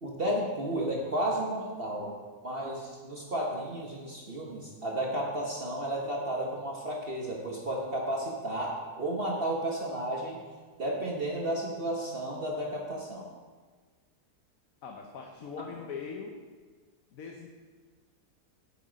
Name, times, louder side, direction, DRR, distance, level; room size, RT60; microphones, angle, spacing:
voice 1, 0.0-2.2 2.4-10.4 10.8-13.3, right 1 dB, 40° right, -2 dB, 1.3 m, -32 dB
voice 2, 14.8-16.4 17.1-17.5, left 5 dB, 65° left, 2 dB, 1.2 m, -41 dB
9.3 x 8.1 x 5.1 m, 1.5 s
omnidirectional pair, 1.7 m